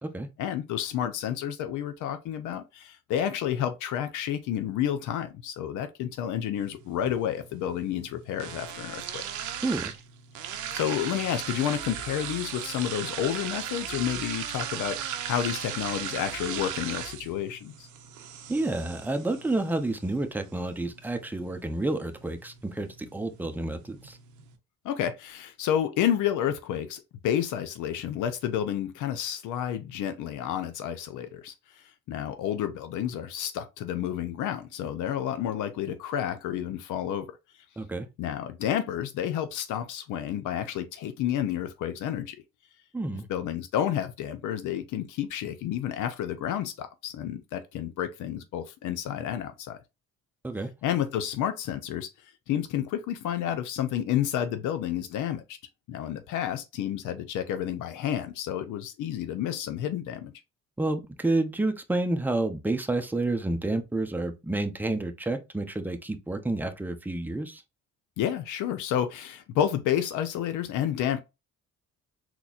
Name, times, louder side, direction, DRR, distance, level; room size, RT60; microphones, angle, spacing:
voice 1, 0.4-9.3 10.7-17.9 24.8-37.4 38.2-42.4 43.3-49.8 50.8-52.1 52.5-55.6 55.9-60.3 68.2-71.2, left 10 dB, 85° left, 0.5 m, -30 dB
sound 1, 6.6-24.6, right 9 dB, 80° right, 0.7 m, -38 dB
voice 2, 9.6-9.9 18.5-24.2 37.8-38.1 42.9-43.3 50.4-50.7 60.8-67.6, right 2 dB, 5° right, 0.6 m, -29 dB
3.9 x 2.9 x 2.4 m
cardioid pair, 90°, 30 cm